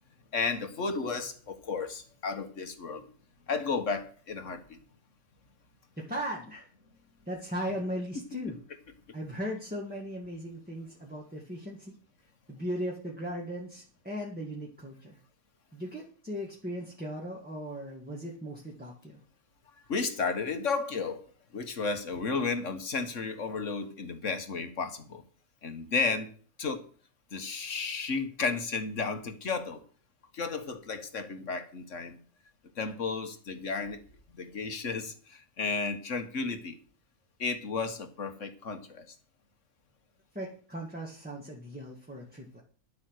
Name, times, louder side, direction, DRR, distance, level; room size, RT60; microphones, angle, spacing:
voice 1, 0.3-3.1 3.5-4.8 19.8-21.2 21.5-25.2 25.6-26.3 26.6-26.9 27.3-29.8 30.3-32.2 32.8-34.0 34.3-36.8 37.4-39.1, left 4 dB, 55° left, 8 dB, 1.7 m, -33 dB
voice 2, 6.0-6.7 7.3-8.6 9.1-12.0 12.5-15.2 15.7-19.2 40.3-42.6, equal, 5° right, -2 dB, 1.9 m, -38 dB
11.5 x 8.4 x 6.5 m, 0.43 s
omnidirectional pair, 1.6 m